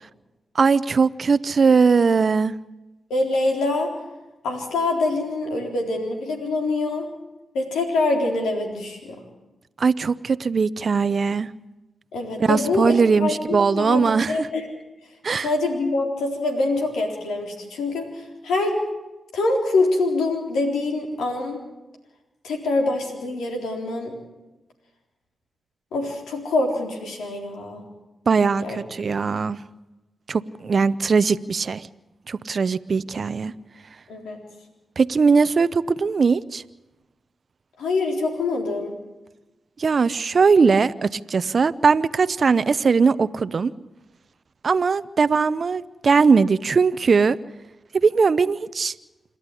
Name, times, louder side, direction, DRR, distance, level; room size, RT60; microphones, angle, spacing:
voice 1, 0.5-2.5 9.8-11.5 12.4-14.3 15.2-15.5 28.3-29.6 30.3-31.9 32.3-33.5 35.0-36.6 39.8-43.7 44.6-47.4 47.9-48.9, right 5 dB, 60° right, 15 dB, 0.7 m, -20 dB
voice 2, 3.1-3.9 4.4-7.1 7.5-9.2 12.1-14.7 15.4-18.8 19.3-21.6 22.4-24.1 25.9-27.8 28.6-28.8 34.1-34.4 37.8-39.0, left 2 dB, 85° left, 2 dB, 3.9 m, -25 dB
27.5 x 11.5 x 10.0 m, 1.0 s
supercardioid pair, 40°, 0 cm